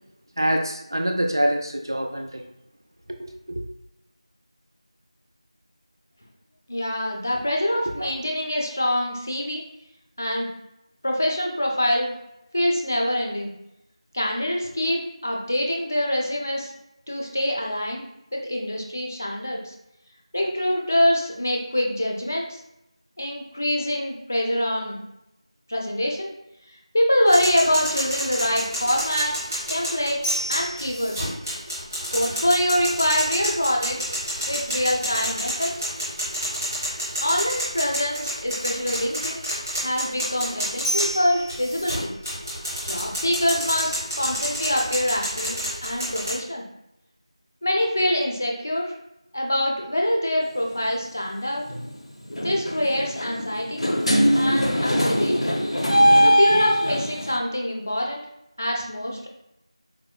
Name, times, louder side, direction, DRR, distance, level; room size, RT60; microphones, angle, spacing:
voice 1, 0.4-2.4 3.1-3.6 8.0-8.1, equal, 40° right, 4 dB, 0.3 m, -25 dB
voice 2, 6.7-9.6 10.2-10.5 11.0-12.1 12.5-13.5 14.1-16.7 17.1-18.0 18.3-19.7 20.3-22.6 23.2-25.0 25.7-26.3 26.7-29.4 29.7-30.2 30.5-31.3 32.1-34.1 34.5-35.8 37.2-39.4 39.8-42.1 42.8-46.6 47.6-48.9 49.3-51.6 52.4-53.8 54.4-55.5 56.2-58.2 58.6-59.3, left 1 dB, 25° left, 0 dB, 0.4 m, -25 dB
sound 1, 27.3-46.3, equal, 5° right, 0.7 m, -29 dB
sound 2, 50.5-50.7 51.7-51.9 52.3-57.4, equal, 70° left, 0.7 m, -21 dB
4.3 x 2.0 x 2.3 m, 0.86 s
figure-of-eight pair, 180°, 3 cm